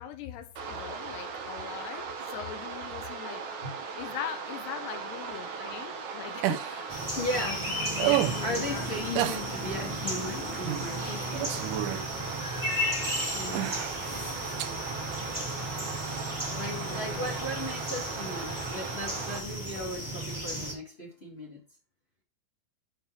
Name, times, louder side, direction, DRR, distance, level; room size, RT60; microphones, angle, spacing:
voice 1, 0.0-3.4 4.0-7.8 8.3-8.9 13.4-14.3 16.5-17.4, left 10 dB, 75° left, 2.9 m, -42 dB
sound 1, 0.6-19.4, right 5 dB, 70° right, 1.8 m, -38 dB
sound 2, 6.4-6.8 7.9-8.5 9.2-9.4 10.6-10.9 11.2-12.1 12.8-12.9 13.5-14.0 14.6-14.7 16.4-16.5, right 15 dB, 90° right, 3.2 m, -29 dB
sound 3, 6.9-20.7, equal, 5° right, 1.4 m, -35 dB
voice 2, 7.1-7.7 8.0-11.5 13.3-13.7 16.5-21.6, left 1 dB, 30° left, 1.2 m, -37 dB
11.0 x 4.7 x 4.6 m
omnidirectional pair, 5.2 m